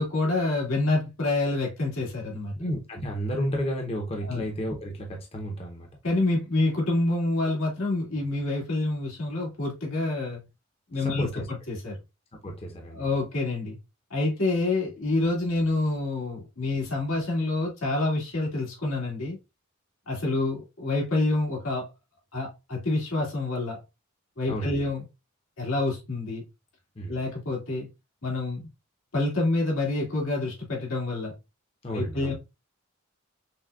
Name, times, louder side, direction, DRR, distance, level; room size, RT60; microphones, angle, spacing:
voice 1, 0.0-2.5 4.2-4.5 6.0-10.4 10.9-11.3 11.7-12.0 12.9-13.8 14.1-19.4 20.1-21.9 22.3-23.8 24.4-25.0 25.6-26.4 27.1-27.9 28.2-28.7 29.1-31.3 31.9-32.3, left 2 dB, 90° left, 1.9 m, -27 dB
voice 2, 2.6-5.9 11.0-11.5 12.4-13.0 24.5-24.8 27.0-27.2 31.8-32.3, equal, 30° left, 0.7 m, -32 dB
5.8 x 2.2 x 2.3 m
head